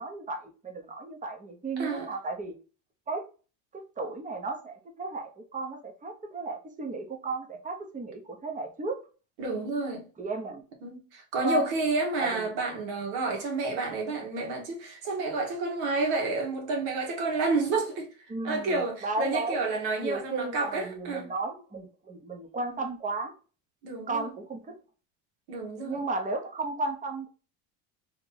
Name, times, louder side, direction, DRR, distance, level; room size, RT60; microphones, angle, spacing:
voice 1, 0.0-2.5 3.1-3.2 3.7-9.0 10.2-10.6 11.4-11.7 12.2-12.5 18.3-19.6 20.0-23.3 24.1-24.7 25.8-27.3, right 2 dB, 20° right, 0.9 m, -34 dB
voice 2, 1.8-2.1 9.4-10.0 10.8-18.1 18.4-21.2 22.7-22.8 23.8-24.3 25.5-26.0, right 3 dB, 75° right, 1.5 m, -30 dB
3.0 x 2.8 x 3.8 m
supercardioid pair, 100°, 41 cm